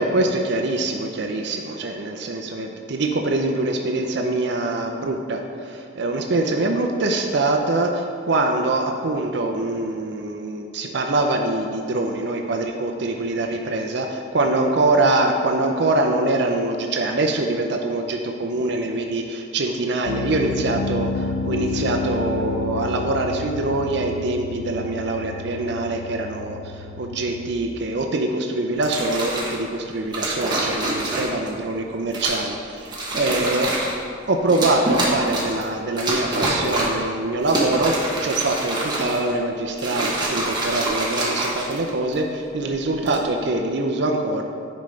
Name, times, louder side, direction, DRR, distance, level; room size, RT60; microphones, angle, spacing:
voice 1, 0.0-33.7 34.3-37.9 38.2-44.4, right 2 dB, 60° right, 3 dB, 0.5 m, -24 dB
Piano, 20.1-27.6, left 3 dB, 70° left, 0.3 m, -30 dB
sound 1, 28.8-29.6 30.1-31.5 32.1-32.5 32.8-34.0 34.5-35.6 36.0-37.0 37.4-39.3 39.7-42.1 42.9-43.2, right 2 dB, 20° right, 1.1 m, -26 dB
10.5 x 5.2 x 3.2 m, 2.4 s
head